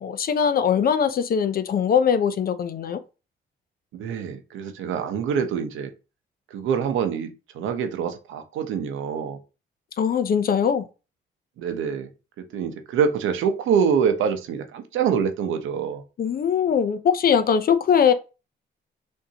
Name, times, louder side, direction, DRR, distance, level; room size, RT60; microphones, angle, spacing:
voice 1, 0.0-3.0 10.0-10.8 16.2-18.1, left 7 dB, 50° left, 0.6 m, -21 dB
voice 2, 3.9-5.9 6.5-9.4 11.6-12.1 12.4-16.0, right 7 dB, 85° right, 0.8 m, -25 dB
6.4 x 2.8 x 2.8 m
cardioid pair, 90°, 20 cm